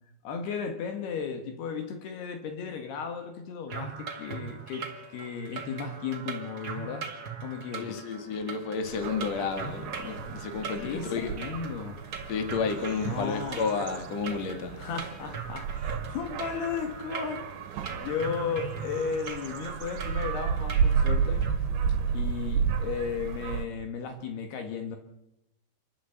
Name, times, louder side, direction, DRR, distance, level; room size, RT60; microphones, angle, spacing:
voice 1, 0.2-4.9 5.1-7.1 7.4-8.0 10.7-12.0 13.0-13.6 14.8-17.4 17.9-21.5 22.1-25.0, left 6 dB, 70° left, 6 dB, 3.4 m, -35 dB
sound 1, 3.7-21.6, right 5 dB, 45° right, 1.2 m, -40 dB
voice 2, 7.8-11.3 12.3-14.8, left 5 dB, 45° left, 6 dB, 3.1 m, -31 dB
sound 2, 8.8-23.7, right 6 dB, 75° right, 3.3 m, -32 dB
28.0 x 12.0 x 8.0 m, 0.90 s
omnidirectional pair, 5.0 m